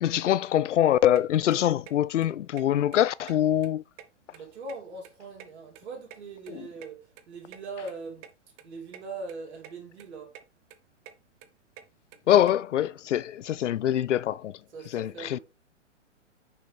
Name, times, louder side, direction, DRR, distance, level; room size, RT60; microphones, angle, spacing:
voice 1, 0.0-3.8 12.3-14.6 14.9-15.4, left 11 dB, 75° left, 0.5 m, -24 dB
sound 1, 1.2-1.3 1.5-1.9 2.2-2.3 2.6-2.7 2.9-3.7 3.9-5.1 5.4-6.9 7.2-7.3 7.5-7.6 7.9-8.0 8.2-8.3 8.6-9.0 9.3-9.7 10.0-10.4 10.7-12.5, right 10 dB, 25° right, 0.6 m, -48 dB
voice 2, 4.3-8.3 8.6-10.4 14.7-15.4, right 3 dB, 65° right, 2.9 m, -41 dB
6.1 x 5.5 x 3.3 m
hypercardioid pair, 120°, 36 cm